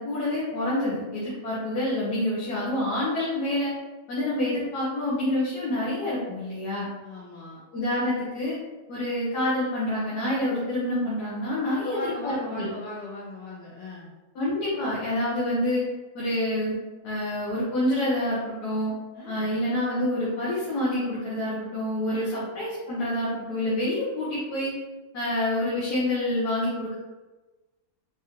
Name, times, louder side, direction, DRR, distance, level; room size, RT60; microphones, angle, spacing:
voice 1, 0.0-3.7 4.1-6.9 7.7-8.6 8.9-12.7 14.3-15.9 16.1-16.7 17.0-18.9 19.3-24.7 25.1-26.9, left 1 dB, 85° left, -8 dB, 1.5 m, -27 dB
voice 2, 7.0-7.6 11.6-14.1 19.1-19.6 22.1-22.5, left 1 dB, 55° left, -5 dB, 0.8 m, -38 dB
4.6 x 2.7 x 2.8 m, 1.2 s
omnidirectional pair, 1.6 m